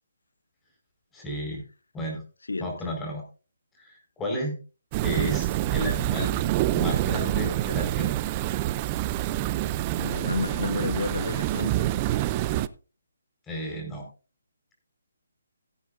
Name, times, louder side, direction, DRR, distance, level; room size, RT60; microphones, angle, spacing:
voice 1, 1.1-1.6 1.9-2.2 2.6-3.2 3.8-4.5 5.0-6.3 6.7-8.1 13.5-14.0, equal, 10° left, 4.9 m, -32 dB
sound 1, 4.9-12.7, right 14 dB, 25° right, 0.5 m, -26 dB
voice 2, 10.0-11.9, left 3 dB, 90° left, 0.6 m, -30 dB
17.0 x 9.8 x 2.6 m
hypercardioid pair, 155°, 0 cm